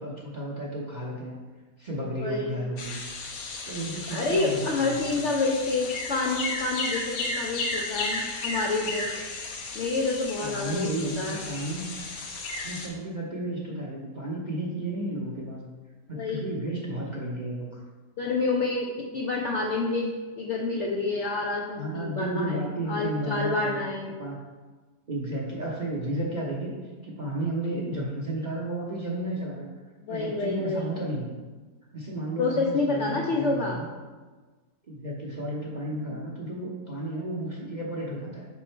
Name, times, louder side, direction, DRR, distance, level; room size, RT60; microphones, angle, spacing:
voice 1, 0.0-1.4 1.8-3.0 3.7-5.2 10.4-11.9 12.6-15.7 16.1-17.8 21.7-23.7 24.2-24.4 25.1-26.7 27.0-29.7 30.1-31.3 31.9-33.9 34.9-38.5, right 1 dB, 40° right, -5 dB, 0.6 m, -33 dB
voice 2, 2.1-2.6 4.1-9.1 9.7-10.9 11.2-11.4 16.1-16.5 18.2-24.1 30.0-30.9 32.4-33.8, left 3 dB, 70° left, -1 dB, 0.7 m, -28 dB
sound 1, 2.8-12.9, left 3 dB, 85° left, 1.4 m, -34 dB
6.1 x 3.6 x 4.4 m, 1.3 s
omnidirectional pair, 1.8 m